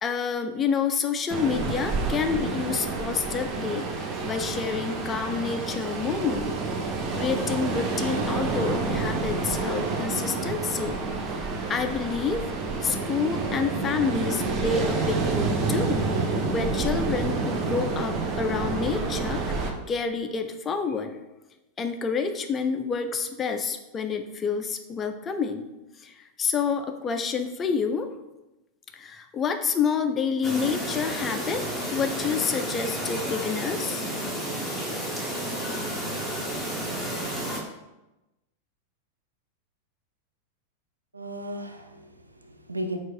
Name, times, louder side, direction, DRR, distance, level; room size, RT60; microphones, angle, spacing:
voice 1, 0.0-6.5 7.1-11.0 11.4-12.4 12.8-16.1 16.5-21.2 21.8-25.7 26.0-28.1 28.9-34.0, left 5 dB, 25° left, 7 dB, 0.4 m, -28 dB
Ocean, 1.3-19.7, right 3 dB, 30° right, 0.6 m, -28 dB
Chirp tweet, 30.4-37.6, right 1 dB, 5° right, 1.0 m, -31 dB
voice 2, 41.1-43.0, right 1 dB, 80° right, 5 dB, 0.5 m, -35 dB
4.4 x 2.5 x 4.5 m, 0.98 s
figure-of-eight pair, 90°, 0 cm